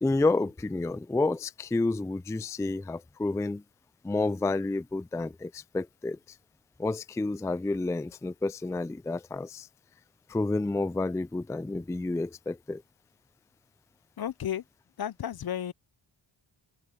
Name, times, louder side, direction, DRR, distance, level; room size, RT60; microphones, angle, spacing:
voice 1, 0.0-3.6 4.0-6.2 6.8-9.7 10.3-12.8, left 2 dB, 5° left, 0.4 m, -30 dB
voice 2, 14.2-14.6 15.0-15.7, left 10 dB, 50° left, 0.7 m, -33 dB
cardioid pair, 60°, 48 cm